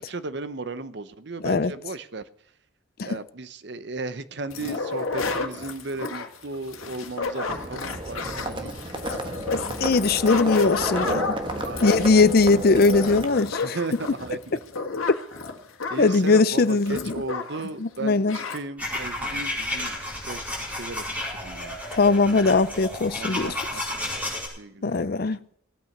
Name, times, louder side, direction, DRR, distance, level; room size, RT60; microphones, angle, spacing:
voice 1, 0.0-2.2 3.0-9.3 11.6-12.2 13.6-14.6 15.9-20.0 20.3-21.8 23.2-23.8 24.2-24.3 24.6-25.2, right 3 dB, 55° right, 0.8 m, -36 dB
sound 1, 4.5-17.7 17.9-18.0 18.3-18.6, left 4 dB, 85° left, 1.9 m, -32 dB
Livestock farm animals working animals, 7.5-13.3, right 1 dB, 25° right, 1.3 m, -32 dB
voice 2, 9.5-11.3 11.8-13.8 16.0-17.0 17.8-18.4 22.0-23.5 24.8-25.4, left 3 dB, 45° left, 0.5 m, -20 dB
sound 2, 18.8-24.5, left 1 dB, 10° right, 4.9 m, -32 dB
16.5 x 8.9 x 6.6 m
head